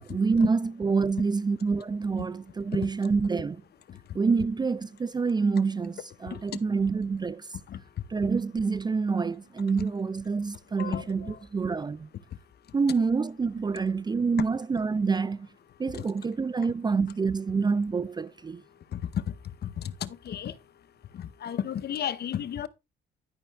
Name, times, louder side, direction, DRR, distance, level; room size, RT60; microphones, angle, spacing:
voice 1, 0.0-3.6 4.1-7.5 8.1-12.1 12.7-15.5 15.8-18.6, right 4 dB, 20° right, 0.4 m, -27 dB
voice 2, 10.8-11.4 18.9-19.0 19.8-20.5 21.4-22.7, left 9 dB, 55° left, 0.7 m, -33 dB
11.5 x 5.5 x 3.3 m
cardioid pair, 90°, 20 cm